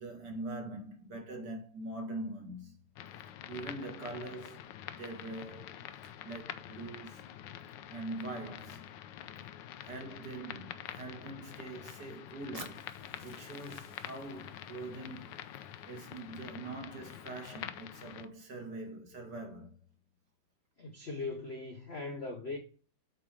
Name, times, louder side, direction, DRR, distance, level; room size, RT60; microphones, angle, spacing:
voice 1, 0.0-2.8 3.5-7.2 7.9-8.9 9.8-12.9 13.2-15.4 15.9-19.8, right 2 dB, 50° right, 2.4 m, -43 dB
sound 1, 3.0-18.2, left 11 dB, 70° left, 1.2 m, -46 dB
Fire, 12.5-16.6, right 2 dB, 25° right, 0.8 m, -54 dB
voice 2, 20.8-22.6, left 3 dB, 50° left, 0.8 m, -39 dB
7.8 x 4.5 x 4.8 m
omnidirectional pair, 2.4 m